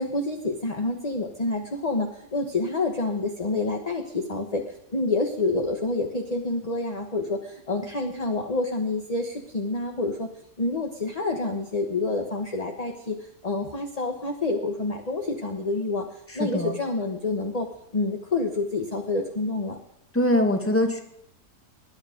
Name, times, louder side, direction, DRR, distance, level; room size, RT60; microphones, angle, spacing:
voice 1, 0.0-4.6 4.9-10.3 10.6-13.2 13.4-16.1 16.3-17.7 17.9-19.8, left 2 dB, 25° left, 3 dB, 1.1 m, -28 dB
voice 2, 16.3-16.8 20.1-21.0, left 1 dB, 10° left, 5 dB, 1.6 m, -23 dB
20.5 x 11.0 x 5.2 m, 0.78 s
omnidirectional pair, 1.7 m